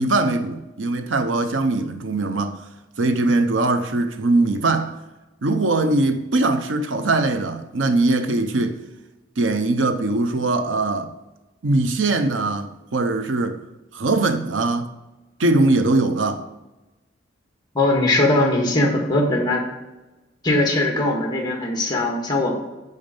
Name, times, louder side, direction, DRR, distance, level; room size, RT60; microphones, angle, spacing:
voice 1, 0.0-2.6 3.0-4.9 5.4-8.8 9.4-11.1 11.6-13.6 13.9-14.9 15.4-16.4, right 2 dB, 90° right, 0.8 m, -21 dB
voice 2, 17.7-19.6 20.4-22.5, left 2 dB, 20° left, 1.8 m, -20 dB
11.0 x 4.0 x 5.3 m
head